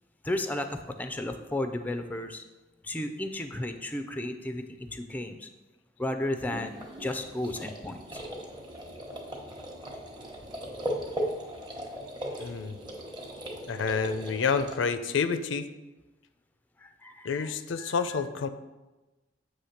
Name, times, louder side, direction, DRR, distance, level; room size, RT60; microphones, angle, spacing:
voice 1, 0.2-2.4 2.8-5.5 6.0-8.2 16.8-18.2, left 1 dB, 10° left, 7 dB, 0.4 m, -34 dB
sound 1, 6.4-14.7, equal, 25° right, 1.0 m, -38 dB
voice 2, 12.4-12.8 13.7-15.7 17.2-18.5, left 5 dB, 85° left, 11 dB, 0.5 m, -29 dB
7.9 x 3.2 x 5.7 m, 1.1 s
head